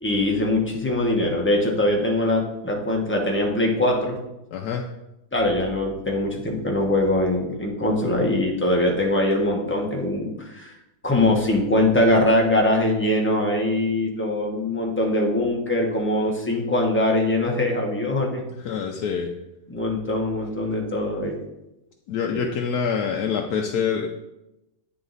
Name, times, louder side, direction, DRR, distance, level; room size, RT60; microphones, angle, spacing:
voice 1, 0.0-4.2 5.3-10.7 11.0-18.4 19.7-21.4 22.3-22.4, left 1 dB, 10° left, -1 dB, 0.8 m, -22 dB
voice 2, 4.5-4.8 18.6-19.3 22.1-24.1, left 6 dB, 80° left, 1 dB, 1.2 m, -26 dB
9.4 x 4.0 x 3.9 m, 0.92 s
omnidirectional pair, 1.7 m